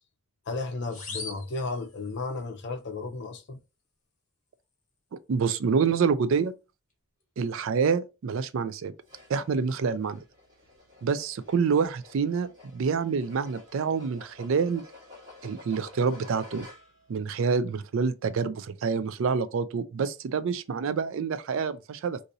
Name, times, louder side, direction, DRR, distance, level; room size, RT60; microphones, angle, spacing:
voice 1, 0.5-3.6, left 3 dB, 50° left, 0.6 m, -34 dB
sound 1, 0.9-2.4, left 4 dB, 35° left, 1.0 m, -41 dB
voice 2, 5.1-6.5 7.4-8.9 9.3-10.2 11.0-14.8 15.4-16.7 17.1-22.2, right 5 dB, 60° right, 0.3 m, -27 dB
sound 2, 9.0-17.1, left 3 dB, 20° right, 1.7 m, -51 dB
3.9 x 2.6 x 2.7 m
head